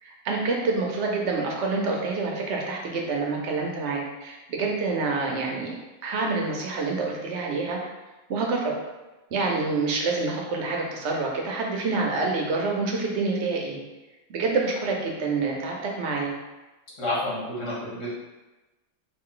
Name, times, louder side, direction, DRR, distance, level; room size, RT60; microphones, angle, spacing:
voice 1, 0.0-5.7 6.0-7.8 8.3-8.7 9.3-13.8 14.3-16.3, right 3 dB, 65° right, 0 dB, 0.9 m, -27 dB
voice 2, 17.0-18.1, left 1 dB, 80° left, -6 dB, 1.5 m, -29 dB
3.2 x 2.5 x 3.7 m, 1.1 s
omnidirectional pair, 1.3 m